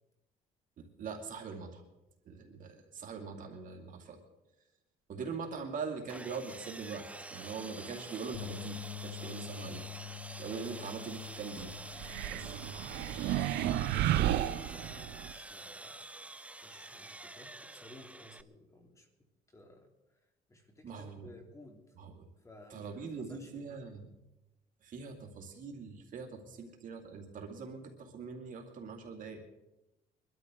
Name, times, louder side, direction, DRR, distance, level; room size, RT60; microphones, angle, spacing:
voice 1, 0.8-1.8 2.3-4.2 5.1-7.0 7.3-9.9 10.4-11.7 12.3-12.6 20.8-21.3 22.0-22.3 22.7-24.1 24.8-29.4, right 5 dB, 50° right, 3 dB, 2.5 m, -42 dB
Sawing, 6.1-18.4, right 2 dB, 10° right, 0.5 m, -47 dB
sound 1, 8.3-14.6, left 12 dB, 85° left, 1.8 m, -47 dB
sound 2, 12.0-15.3, right 13 dB, 80° right, 0.6 m, -32 dB
voice 2, 13.3-16.1 16.6-19.1 19.5-19.9 20.5-21.9 22.4-23.8, left 1 dB, 20° left, 2 dB, 2.9 m, -55 dB
24.0 x 12.5 x 3.8 m, 0.97 s
cardioid pair, 110°, 17 cm